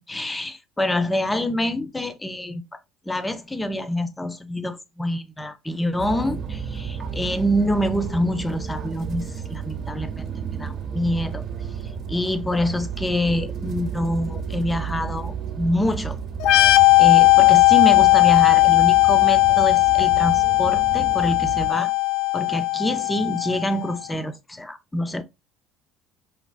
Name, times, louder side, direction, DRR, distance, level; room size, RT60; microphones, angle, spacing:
voice 1, 0.0-2.6 3.1-11.4 12.1-16.2 16.7-21.9 22.3-25.2, left 1 dB, 10° left, 0.4 m, -26 dB
sound 1, 6.0-21.7, right 7 dB, 40° right, 0.8 m, -32 dB
sound 2, 16.4-23.9, left 20 dB, 75° left, 0.4 m, -17 dB
5.2 x 2.8 x 2.4 m
cardioid pair, 145°, 0 cm